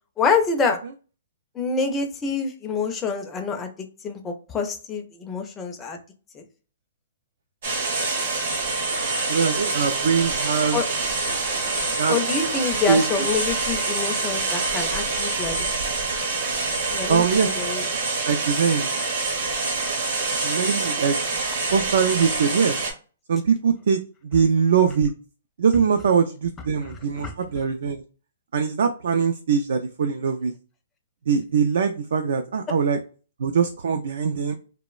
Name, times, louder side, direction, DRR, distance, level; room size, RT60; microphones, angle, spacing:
voice 1, 0.2-0.8 1.6-6.0 6.3-6.4 10.7-10.8 12.1-15.6 16.9-17.8 20.3-20.4 27.2-27.3, left 5 dB, 10° left, 4 dB, 0.4 m, -26 dB
sound 1, 7.6-22.9, right 3 dB, 50° right, 0.8 m, -26 dB
voice 2, 8.9-10.8 11.9-12.2 12.9-13.3 17.1-17.5 18.2-18.9 20.3-21.2 21.7-22.8 23.3-25.1 25.6-28.0 28.5-30.5 31.3-33.0 33.4-34.5, right 6 dB, 65° right, 6 dB, 0.3 m, -22 dB
2.9 x 2.0 x 2.3 m, 0.36 s
hypercardioid pair, 165°, 0 cm